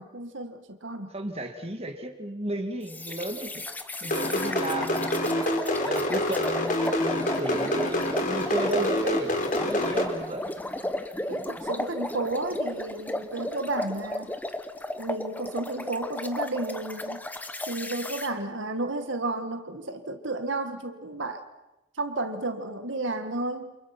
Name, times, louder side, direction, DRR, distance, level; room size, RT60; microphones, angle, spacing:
voice 1, 0.0-1.1 11.3-14.4 15.0-17.3 17.7-21.5 22.0-23.8, right 2 dB, 70° right, 7 dB, 1.8 m, -32 dB
voice 2, 1.1-3.6 4.0-10.6, right 1 dB, 30° right, 5 dB, 2.3 m, -34 dB
sound 1, 2.9-18.3, left 1 dB, 10° left, 1.1 m, -34 dB
sound 2, 4.0-10.1, left 1 dB, 40° left, 3.9 m, -26 dB
29.0 x 27.0 x 6.0 m, 0.97 s
head